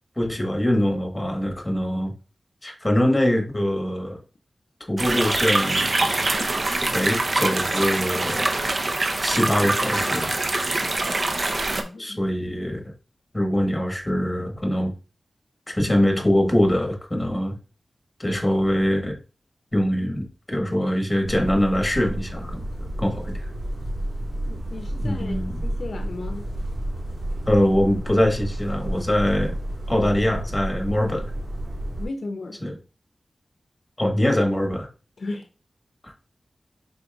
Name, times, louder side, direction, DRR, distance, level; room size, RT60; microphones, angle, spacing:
voice 1, 0.2-2.1 2.6-4.2 4.9-5.9 6.9-8.4 9.2-10.3 12.0-12.8 13.3-14.9 15.7-17.6 18.2-19.1 19.7-22.6 23.0-23.5 25.0-25.6 27.5-29.5 29.9-31.3 32.6-32.8 34.0-34.9 36.0-36.1, left 1 dB, 20° left, 1.3 m, -23 dB
sound 1, 5.0-11.8, right 2 dB, 50° right, 0.6 m, -24 dB
voice 2, 11.7-12.2 24.4-26.5 32.0-32.6 35.2-35.5, left 2 dB, 75° left, 0.6 m, -35 dB
sound 2, 21.2-32.1, right 1 dB, 85° right, 2.5 m, -31 dB
5.2 x 4.0 x 2.3 m
cardioid pair, 60°, 0 cm